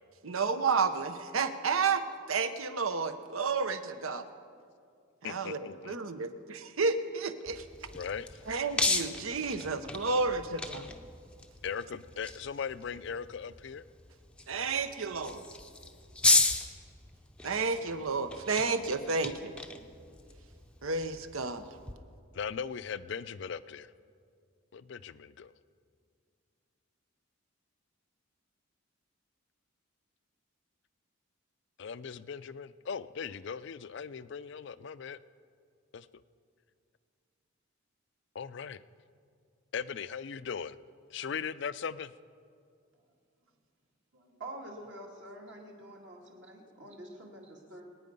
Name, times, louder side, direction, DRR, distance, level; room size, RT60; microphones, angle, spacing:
voice 1, 0.2-4.3 5.2-7.6 8.5-10.9 14.5-15.4 17.4-19.5 20.8-21.7, right 4 dB, 75° right, 10 dB, 0.9 m, -31 dB
voice 2, 5.2-6.0 7.9-8.4 11.6-13.8 22.3-23.9 24.7-25.5 31.8-35.2 35.9-36.1 38.3-38.8 39.7-40.8 41.1-42.1, left 6 dB, 55° left, 15 dB, 0.4 m, -39 dB
sound 1, 7.5-21.9, left 2 dB, 5° left, 0.6 m, -35 dB
voice 3, 44.1-47.8, right 1 dB, 55° right, 0 dB, 2.4 m, -47 dB
24.5 x 9.3 x 5.3 m, 2.3 s
head